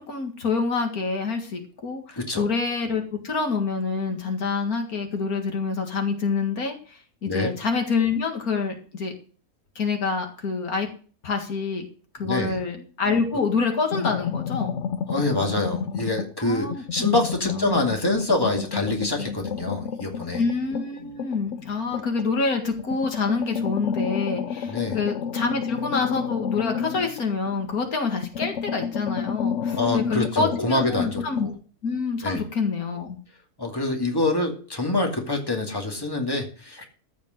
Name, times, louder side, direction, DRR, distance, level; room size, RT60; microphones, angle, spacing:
voice 1, 0.1-9.1 9.8-10.9 11.2-11.9 12.1-14.8 16.4-17.1 17.5-17.8 20.4-31.5 31.8-33.2, left 4 dB, 80° left, 4 dB, 2.4 m, -27 dB
voice 2, 12.2-12.6 15.1-20.4 24.7-25.0 29.7-31.5 32.2-32.4 33.6-36.9, left 2 dB, 15° left, 1 dB, 2.4 m, -26 dB
sound 1, 13.9-16.4 16.7-22.3 22.8-27.8 28.1-31.5, left 7 dB, 60° left, 0.9 m, -31 dB
14.0 x 5.2 x 7.8 m, 0.41 s
omnidirectional pair, 1.5 m